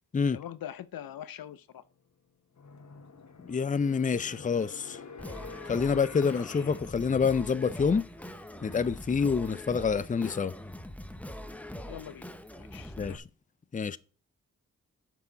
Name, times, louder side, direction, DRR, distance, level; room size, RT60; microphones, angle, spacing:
voice 1, 0.3-1.8 11.8-12.3 12.6-13.2, left 10 dB, 85° left, 0.6 m, -43 dB
sound 1, 1.8-1.9 2.5-7.7, left 5 dB, 55° left, 1.3 m, -48 dB
voice 2, 3.4-5.0 5.7-8.0 8.6-10.5 13.0-13.2 13.7-14.0, left 5 dB, 25° left, 0.5 m, -27 dB
Singing, 5.2-13.2, left 1 dB, 5° left, 0.8 m, -43 dB
6.6 x 4.8 x 5.1 m
cardioid pair, 45°, 34 cm